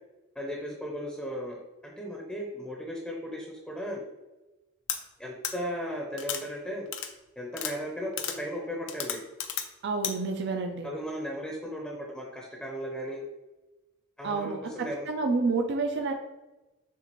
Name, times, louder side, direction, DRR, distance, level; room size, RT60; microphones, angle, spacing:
voice 1, 0.4-1.6 1.8-4.0 5.2-6.9 7.4-9.2 10.8-13.2 14.2-15.1, equal, 5° left, -2 dB, 0.6 m, -36 dB
sound 1, 4.9-5.0 5.4-5.5 6.2-6.4 6.9-7.1 7.5-7.7 8.2-8.4 8.9-9.7 10.0-10.1, left 9 dB, 60° left, 0.5 m, -32 dB
voice 2, 9.8-10.9 14.2-16.1, right 3 dB, 55° right, 4 dB, 0.4 m, -29 dB
7.0 x 2.4 x 3.0 m, 1.1 s
head